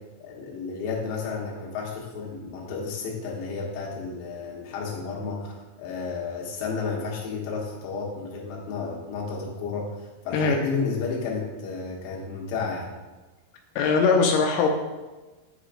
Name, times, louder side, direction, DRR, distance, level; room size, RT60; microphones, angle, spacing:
voice 1, 0.2-12.9, left 4 dB, 70° left, -3 dB, 2.8 m, -32 dB
voice 2, 10.3-10.7 13.8-14.7, left 4 dB, 90° left, 1 dB, 2.7 m, -21 dB
8.7 x 4.9 x 2.5 m, 1.2 s
omnidirectional pair, 4.6 m